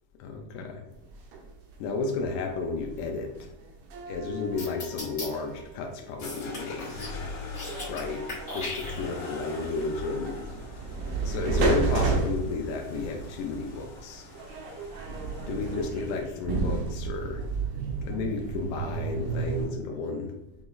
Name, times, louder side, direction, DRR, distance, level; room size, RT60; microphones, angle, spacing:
voice 1, 0.2-0.8 1.8-3.5 4.1-7.1 7.8-8.2 8.5-10.4 11.2-14.3 15.4-17.4 18.0-20.3, left 3 dB, 85° left, 2 dB, 2.8 m, -32 dB
sound 1, 0.9-7.2 7.5-19.7, right 3 dB, 75° right, 2.8 m, -33 dB
sound 2, 4.6-5.3 6.2-7.2 7.4-8.0 8.3-9.3, left 2 dB, 35° left, 1.1 m, -37 dB
sound 3, 6.2-16.4, left 3 dB, 70° left, 3.2 m, -42 dB
8.5 x 3.8 x 3.1 m, 0.92 s
omnidirectional pair, 4.9 m